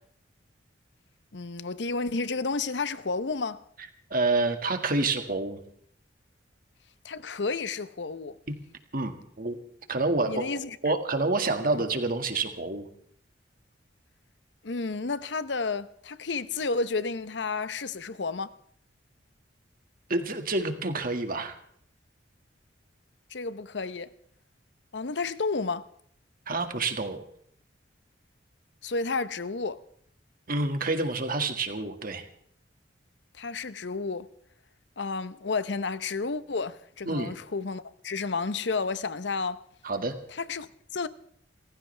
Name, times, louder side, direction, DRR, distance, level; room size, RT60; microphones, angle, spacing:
voice 1, 1.3-3.6 7.0-8.4 10.3-10.8 14.6-18.5 23.3-24.1 24.9-25.9 28.8-29.8 33.4-34.3 35.0-39.6 40.3-41.1, left 4 dB, 70° left, 0.8 m, -31 dB
voice 2, 4.1-5.6 8.9-9.6 9.9-12.9 20.1-21.6 26.5-27.2 30.5-32.2 37.1-37.4 39.8-40.1, right 3 dB, 50° right, 1.9 m, -28 dB
28.5 x 15.0 x 3.4 m
head